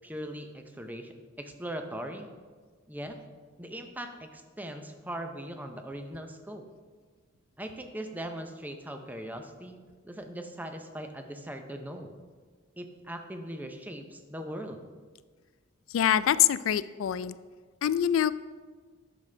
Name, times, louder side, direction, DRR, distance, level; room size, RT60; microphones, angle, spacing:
voice 1, 0.0-2.3 2.9-3.2 3.6-6.7 7.6-9.8 10.0-12.1 12.8-14.9, right 1 dB, 10° right, 5 dB, 0.6 m, -40 dB
voice 2, 15.9-17.4 17.8-18.4, left 10 dB, 75° left, 16 dB, 0.3 m, -25 dB
10.5 x 6.4 x 3.3 m, 1.5 s
head